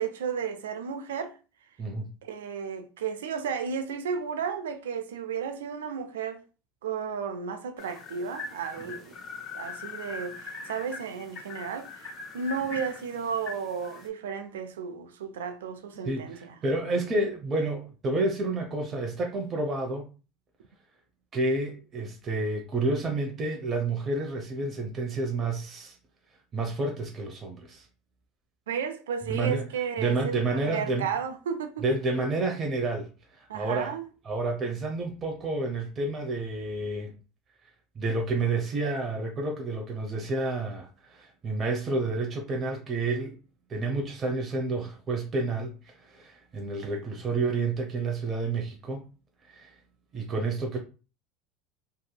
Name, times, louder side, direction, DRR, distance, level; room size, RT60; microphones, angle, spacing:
voice 1, 0.0-1.4 2.2-6.4 6.8-9.2 9.5-16.6 28.7-31.9 33.5-34.1, right 6 dB, 90° right, 0.4 m, -33 dB
voice 2, 1.8-2.1 16.0-20.0 21.3-26.0 26.5-27.9 29.3-29.6 30.0-31.1 31.8-33.1 33.4-33.9 34.2-37.1 38.0-43.4 43.7-45.7 46.0-49.0 49.5-49.7 50.1-50.8, right 3 dB, 35° right, 0.6 m, -29 dB
sound 1, 7.8-14.1, left 3 dB, 40° left, 0.7 m, -41 dB
2.7 x 2.6 x 2.2 m
hypercardioid pair, 95°, 0 cm